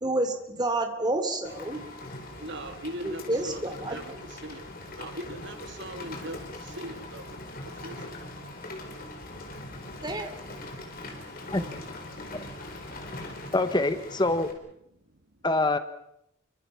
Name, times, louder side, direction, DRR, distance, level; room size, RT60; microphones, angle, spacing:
voice 1, 0.0-1.8 3.0-4.0 10.0-10.3, right 2 dB, 20° right, 7 dB, 3.1 m, -29 dB
Rain, 1.4-14.5, left 2 dB, 50° left, 4.4 m, -41 dB
voice 2, 2.3-8.1 10.0-10.1, right 1 dB, 60° right, 7 dB, 2.6 m, -41 dB
voice 3, 13.5-14.5 15.4-15.8, left 2 dB, 20° left, 10 dB, 1.1 m, -25 dB
29.5 x 24.5 x 5.8 m, 0.79 s
head